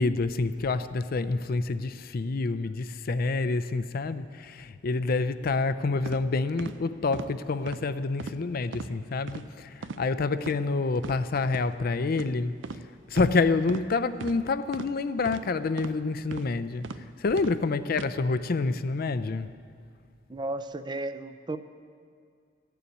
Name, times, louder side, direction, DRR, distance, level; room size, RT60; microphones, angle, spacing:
voice 1, 0.0-12.5 13.1-16.9 17.2-19.5, left 3 dB, 55° left, 0.5 m, -27 dB
sound 1, 6.0-6.2 6.6-6.7 7.1-7.3 7.7-7.8 8.2-8.4 8.7-8.9 9.3-9.4 9.8-10.0 10.4-10.6 11.0-11.1 11.5-11.7 12.1-12.3 12.6-12.8 13.1-13.3 13.7-13.9 14.2-14.4 14.7-14.9 15.2-15.4 15.8-16.0 16.3-16.5 16.8-17.0 17.4-17.6 17.9-18.1, right 4 dB, 85° right, 0.5 m, -38 dB
voice 2, 20.3-21.6, right 2 dB, 25° right, 0.4 m, -34 dB
14.0 x 7.0 x 9.2 m
head